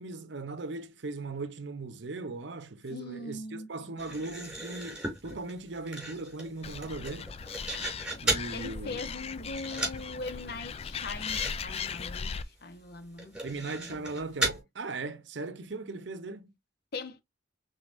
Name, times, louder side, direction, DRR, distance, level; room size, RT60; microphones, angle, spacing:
voice 1, 0.0-7.3 8.2-9.0 13.4-16.5, right 3 dB, 65° right, 0.7 m, -38 dB
voice 2, 2.9-3.7 8.5-13.4 13.7-14.1 16.9-17.2, left 2 dB, 55° left, 0.8 m, -41 dB
sound 1, 4.0-8.5 9.0-9.3 9.6-10.1 10.3-10.4 10.7-10.9 11.2-11.5 11.8-11.9 12.4-12.5 13.2-14.6, right 1 dB, 5° right, 3.2 m, -35 dB
Animal, 6.6-12.4, left 6 dB, 30° left, 0.3 m, -38 dB
5.3 x 3.8 x 2.5 m
head